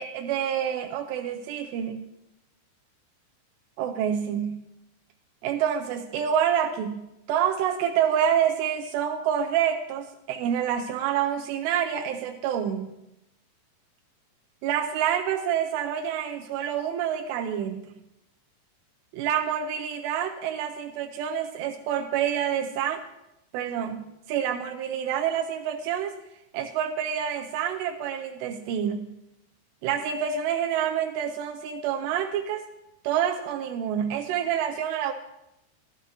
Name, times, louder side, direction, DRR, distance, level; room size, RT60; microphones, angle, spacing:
voice 1, 0.0-2.0 3.8-4.6 5.4-12.9 14.6-18.0 19.1-23.0 23.5-26.2 26.5-29.1 29.8-32.7 33.0-35.1, right 9 dB, 85° right, 4 dB, 2.7 m, -27 dB
14.5 x 12.5 x 2.8 m, 0.87 s
omnidirectional pair, 4.9 m